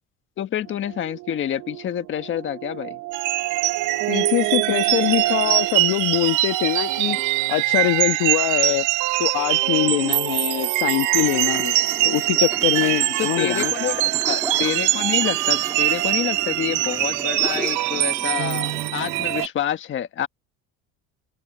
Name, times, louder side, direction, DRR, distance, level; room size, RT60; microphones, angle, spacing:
voice 1, 0.4-3.0 13.2-20.3, left 10 dB, 40° left, 1.4 m, -28 dB
sound 1, 0.6-5.9, right 20 dB, 85° right, 2.5 m, -30 dB
sound 2, 3.1-19.5, right 18 dB, 70° right, 0.8 m, -23 dB
voice 2, 4.1-7.2 7.5-8.9 9.2-13.7, left 18 dB, 90° left, 1.4 m, -23 dB
sound 3, 11.1-19.5, right 2 dB, 10° right, 2.4 m, -36 dB
open air
cardioid pair, 155°, 32 cm